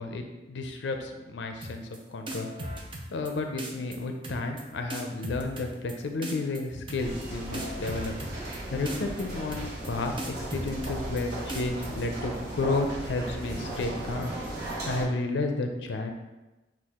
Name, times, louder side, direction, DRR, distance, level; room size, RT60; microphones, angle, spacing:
voice 1, 0.0-1.8 2.1-2.5 2.7-2.8 3.1-8.1 8.7-14.3 14.9-16.1, left 3 dB, 75° left, 5 dB, 0.4 m, -32 dB
sound 1, 1.6-2.0 2.3-3.3 3.6-4.0 4.2-4.6 4.9-5.9 6.2-6.6 6.9-7.3 7.5-8.6 8.9-9.2 9.5-9.9 10.2-11.2 11.5-11.9, right 1 dB, 30° right, 0.5 m, -37 dB
sound 2, 7.0-15.0, right 1 dB, 60° right, 1.0 m, -36 dB
6.1 x 2.4 x 3.5 m, 1.1 s
head